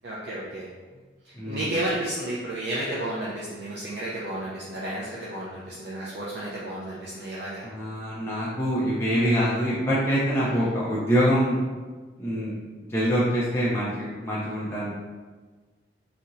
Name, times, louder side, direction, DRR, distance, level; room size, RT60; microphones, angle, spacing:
voice 1, 0.0-0.7 1.2-7.7 10.4-10.7, right 1 dB, 65° right, -7 dB, 0.6 m, -32 dB
voice 2, 1.3-1.7 7.6-11.6 12.2-12.5 12.9-14.9, equal, 15° left, -9 dB, 0.5 m, -25 dB
4.1 x 2.9 x 2.5 m, 1.4 s
head